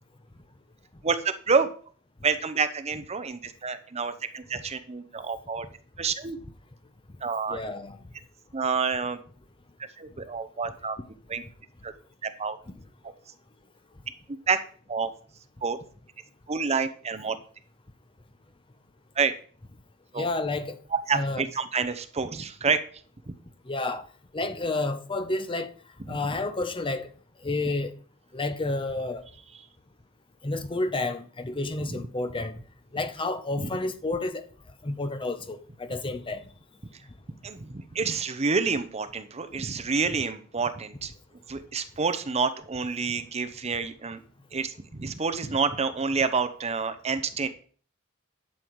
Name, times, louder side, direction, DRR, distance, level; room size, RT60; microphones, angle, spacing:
voice 1, 1.0-1.7 2.2-5.6 6.0-6.4 7.2-7.6 8.5-9.2 9.8-11.0 11.3-11.4 11.8-11.9 12.2-12.6 14.5-14.6 14.9-15.1 15.6-15.8 16.5-17.4 19.2-19.3 20.1-20.3 20.9-23.0 23.3-23.4 26.1-26.4 29.5-29.7 31.8-32.1 33.6-33.7 36.9-37.0 37.4-41.1 41.5-44.2 44.5-47.5, right 5 dB, 30° right, 0.8 m, -28 dB
voice 2, 7.5-8.0 20.2-20.8 21.1-21.4 23.7-24.1 24.3-25.7 26.1-27.1 27.4-27.9 28.3-29.2 30.4-32.6 32.9-34.5 34.8-36.4, left 2 dB, 25° left, 0.8 m, -30 dB
11.5 x 7.0 x 4.6 m
head